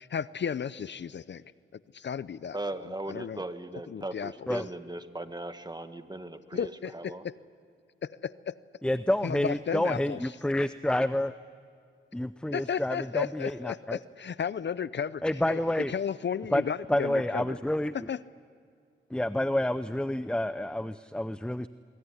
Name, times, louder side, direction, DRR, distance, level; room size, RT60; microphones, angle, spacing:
voice 1, 0.0-1.4 1.9-2.6 3.1-3.4 3.9-4.5 6.5-7.4 8.0-8.5 9.2-10.2 12.5-15.6 15.9-17.6 18.1-18.2, left 7 dB, 60° left, 17 dB, 0.6 m, -34 dB
voice 2, 2.5-7.3, right 2 dB, 20° right, 9 dB, 1.7 m, -38 dB
voice 3, 8.8-11.3 12.1-14.0 15.2-15.9 16.5-16.6 16.9-18.1 19.1-21.7, left 1 dB, 5° left, 14 dB, 0.6 m, -29 dB
24.0 x 22.5 x 9.9 m, 2.2 s
cardioid pair, 65°, 21 cm